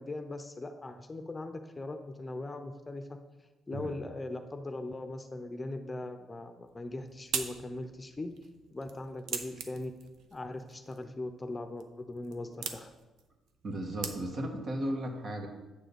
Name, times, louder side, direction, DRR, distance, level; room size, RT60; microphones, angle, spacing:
voice 1, 0.0-3.2 3.7-8.3 8.7-9.9 10.3-12.9, left 2 dB, 20° left, 7 dB, 0.7 m, -40 dB
sound 1, 6.6-14.6, right 6 dB, 80° right, 0.7 m, -43 dB
voice 2, 13.6-15.5, right 1 dB, 50° right, 2 dB, 1.6 m, -35 dB
8.7 x 3.8 x 6.9 m, 1.2 s
cardioid pair, 90°, 0 cm